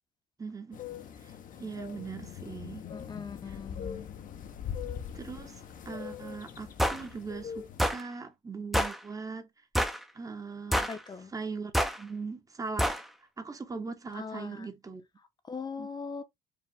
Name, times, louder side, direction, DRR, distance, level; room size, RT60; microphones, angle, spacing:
voice 1, 0.4-0.8 1.2-2.8 5.1-9.5 10.1-10.9 11.3-11.7 12.0-12.9 13.2-15.0 15.8-15.9, right 4 dB, 20° right, 1.0 m, -40 dB
sound 1, 0.7-7.9, left 8 dB, 55° left, 0.9 m, -42 dB
voice 2, 2.9-4.0 10.9-11.3 14.1-14.7 15.5-16.2, left 5 dB, 25° left, 0.9 m, -40 dB
sound 2, 6.8-7.0 7.8-8.0 8.7-9.0 9.8-10.0 10.7-11.0 11.7-12.0 12.8-13.0, equal, ahead, 0.7 m, -27 dB
4.9 x 2.4 x 3.6 m
cardioid pair, 110°, 17 cm